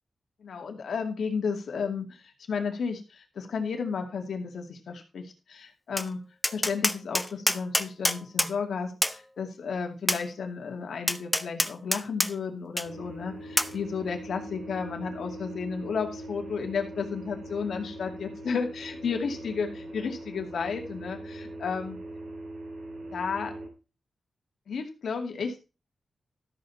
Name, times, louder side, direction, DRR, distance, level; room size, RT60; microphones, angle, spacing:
voice 1, 0.4-6.2 6.5-22.0 23.1-23.5 24.7-25.6, left 5 dB, 85° left, 4 dB, 2.4 m, -33 dB
Tap, 6.0-6.1 6.4-8.5 9.0-9.2 10.1-10.2 11.1-12.3 12.8-12.9 13.6-13.7, left 1 dB, 5° left, 0.6 m, -26 dB
sound 1, 12.8-23.7, right 1 dB, 90° right, 3.1 m, -41 dB
13.5 x 7.5 x 4.3 m, 0.31 s
wide cardioid pair, 135°, 0 cm